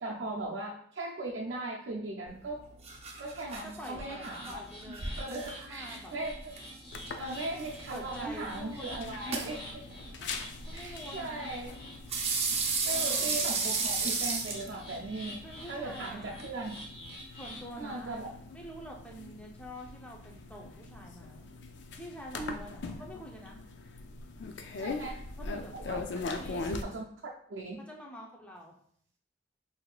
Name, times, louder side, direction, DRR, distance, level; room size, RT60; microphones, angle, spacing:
voice 1, 0.0-2.7 3.2-6.5 7.2-9.6 10.7-11.7 12.9-15.4 15.7-16.8 17.8-18.3 22.4-22.6 24.8-25.2 25.7-26.0 26.5-27.8, right 2 dB, 80° right, -4 dB, 0.5 m, -38 dB
sound 1, 2.3-16.5, right 4 dB, 35° right, 0.6 m, -36 dB
voice 2, 3.6-6.1 7.9-9.6 10.2-11.5 12.9-13.7 15.4-16.5 17.4-21.5 22.0-23.6 24.8-26.7 27.8-28.8, equal, 5° left, -1 dB, 0.6 m, -47 dB
sound 2, 4.1-17.7, equal, 30° left, 1.0 m, -48 dB
sound 3, 6.9-26.8, left 3 dB, 70° left, 0.4 m, -43 dB
5.9 x 2.6 x 2.3 m, 0.63 s
head